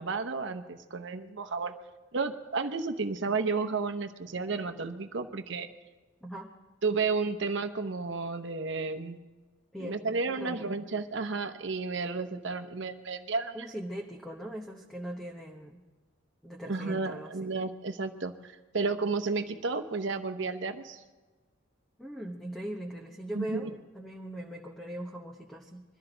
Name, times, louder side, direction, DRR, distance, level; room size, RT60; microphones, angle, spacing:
voice 1, 0.0-1.7 2.1-5.7 6.8-9.2 9.8-13.7 16.7-21.0 23.3-23.7, right 4 dB, 65° right, 6 dB, 0.9 m, -32 dB
voice 2, 6.2-6.5 9.7-10.0 10.3-10.8 13.5-15.8 16.4-17.5 22.0-25.8, right 1 dB, ahead, 0 dB, 0.9 m, -40 dB
22.5 x 13.0 x 3.9 m, 1.3 s
head